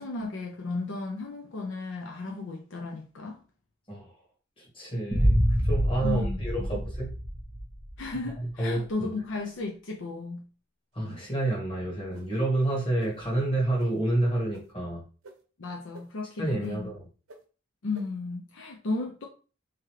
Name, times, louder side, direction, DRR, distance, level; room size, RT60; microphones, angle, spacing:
voice 1, 0.0-3.4 6.0-6.8 8.0-10.4 15.6-16.9 17.8-19.3, left 3 dB, 65° left, 0.6 m, -34 dB
voice 2, 4.6-7.1 8.6-9.1 10.9-15.0 16.4-17.0, right 2 dB, 25° left, 1.4 m, -29 dB
Boom, 5.1-8.1, equal, ahead, 0.5 m, -26 dB
sound 1, 11.0-11.4 12.1-12.3 13.0-13.1 13.8-13.9 14.5-14.6 15.2-15.3 15.9-16.0 16.6-16.7 17.3-17.4 17.9-18.0, right 2 dB, 90° right, 0.8 m, -46 dB
3.6 x 3.0 x 3.1 m
head